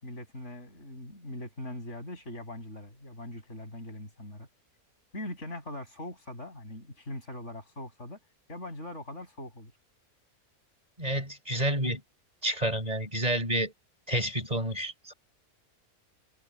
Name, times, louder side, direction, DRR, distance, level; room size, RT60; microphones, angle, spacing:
voice 1, 0.0-4.5 5.1-8.2 8.5-9.7, left 1 dB, 50° left, 7.2 m, -41 dB
voice 2, 11.0-12.0 12.4-13.7 14.1-15.1, right 1 dB, 25° right, 5.8 m, -29 dB
omnidirectional pair, 1.5 m